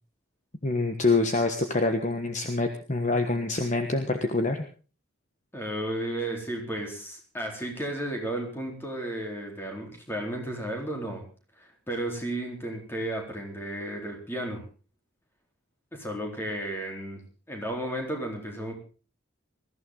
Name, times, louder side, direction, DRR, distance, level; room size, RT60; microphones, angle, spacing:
voice 1, 0.6-4.6, left 2 dB, 35° left, 6 dB, 1.3 m, -26 dB
voice 2, 5.5-11.2 11.6-14.6 15.9-17.2 17.5-18.7, right 1 dB, 10° left, 1 dB, 4.0 m, -33 dB
21.0 x 14.5 x 3.9 m, 0.37 s
head